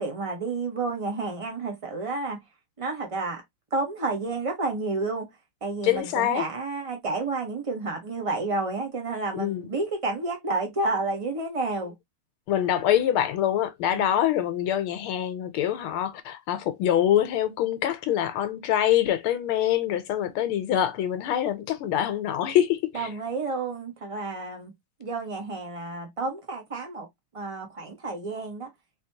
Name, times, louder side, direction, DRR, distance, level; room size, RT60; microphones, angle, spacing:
voice 1, 0.0-2.4 2.8-3.4 3.7-5.3 5.6-11.9 13.9-14.1 22.9-24.7 25.0-27.1 27.3-28.7, right 3 dB, 35° right, 0.5 m, -30 dB
voice 2, 5.8-6.4 9.3-9.7 12.5-23.1, left 11 dB, 75° left, 1.5 m, -25 dB
4.1 x 2.8 x 2.8 m
omnidirectional pair, 2.4 m